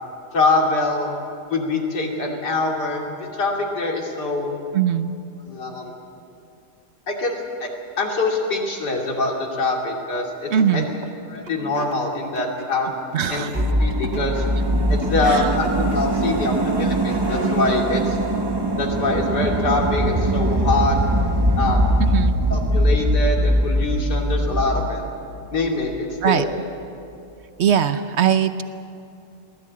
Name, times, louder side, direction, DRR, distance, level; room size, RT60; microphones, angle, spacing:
voice 1, 0.3-1.1 1.5-4.5 5.4-5.9 7.1-7.7 8.0-10.8 11.2-12.9 13.3-13.5 13.8-14.4 14.9-18.2 18.8-21.0 21.6-21.8 22.5-25.0 25.5-26.5, left 2 dB, 80° left, 0 dB, 3.4 m, -24 dB
voice 2, 4.7-5.1 10.5-10.9 13.1-13.5 22.1-22.3 26.2-26.4 27.6-28.6, right 8 dB, 55° right, 11 dB, 0.9 m, -20 dB
sound 1, 10.6-17.7, right 1 dB, 35° right, 2.7 m, -39 dB
sound 2, 13.5-26.0 26.2-26.3, right 1 dB, 20° right, 0.8 m, -21 dB
23.0 x 17.0 x 8.6 m, 2.6 s
omnidirectional pair, 1.8 m